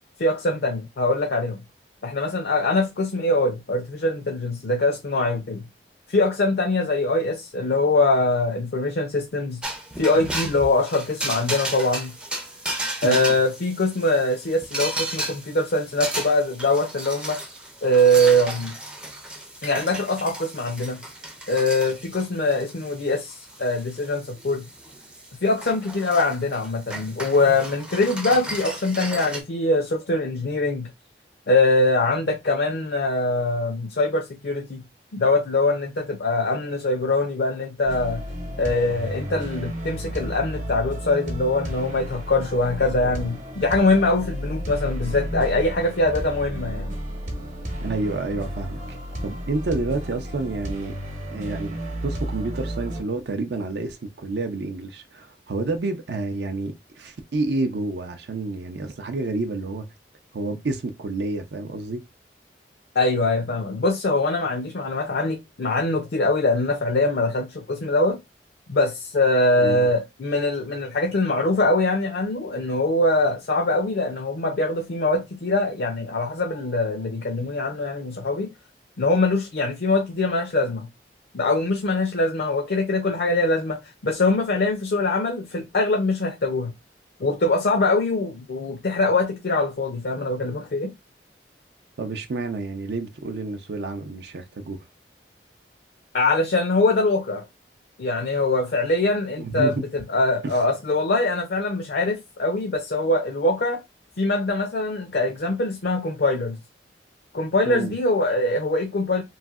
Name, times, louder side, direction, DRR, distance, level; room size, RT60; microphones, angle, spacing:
voice 1, 0.2-1.6 2.0-5.6 6.1-9.6 10.0-12.1 13.0-17.4 17.8-18.7 19.6-21.0 21.5-23.3 23.6-24.6 25.4-30.9 31.5-34.8 35.1-38.2 38.6-46.9 63.0-68.2 68.7-78.5 79.0-80.9 81.3-86.7 87.2-90.9 96.1-97.4 98.0-103.8 104.2-106.6 107.3-109.2, left 2 dB, 65° left, 0.5 m, -23 dB
sound 1, 9.6-29.4, right 1 dB, 5° right, 0.4 m, -34 dB
sound 2, 37.9-53.0, equal, 45° right, 0.9 m, -32 dB
voice 2, 47.8-48.8 49.2-50.9 51.3-59.9 60.3-62.0 69.6-69.9 92.0-94.8 99.4-99.7 100.4-100.6 107.7-107.9, right 3 dB, 70° right, 0.5 m, -29 dB
3.1 x 2.6 x 2.4 m
head